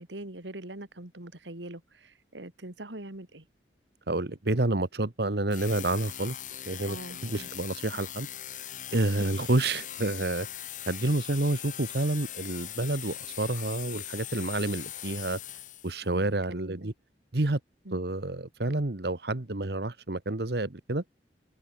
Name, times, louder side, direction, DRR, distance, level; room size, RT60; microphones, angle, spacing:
voice 1, 0.0-3.5 6.8-7.5 9.2-9.4 16.0-16.9 17.8-18.0, right 1 dB, 85° right, 2.9 m, -43 dB
voice 2, 4.1-6.4 6.7-7.0 7.2-8.3 8.9-10.5 10.9-15.4 15.8-16.9 17.3-17.6 17.9-21.0, right 2 dB, 65° right, 1.3 m, -29 dB
sound 1, 5.5-16.1, left 11 dB, 45° left, 1.6 m, -40 dB
head